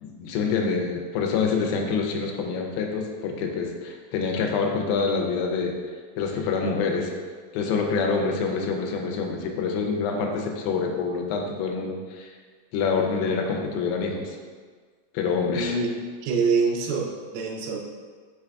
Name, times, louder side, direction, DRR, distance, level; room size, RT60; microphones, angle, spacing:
voice 1, 0.0-5.7 6.2-7.1 7.5-12.3 12.7-14.4 15.1-15.8, left 5 dB, 85° left, 1 dB, 2.4 m, -26 dB
voice 2, 15.5-15.9 16.2-17.8, right 4 dB, 90° right, 1 dB, 2.5 m, -25 dB
6.2 x 3.4 x 2.3 m, 1.6 s
omnidirectional pair, 4.2 m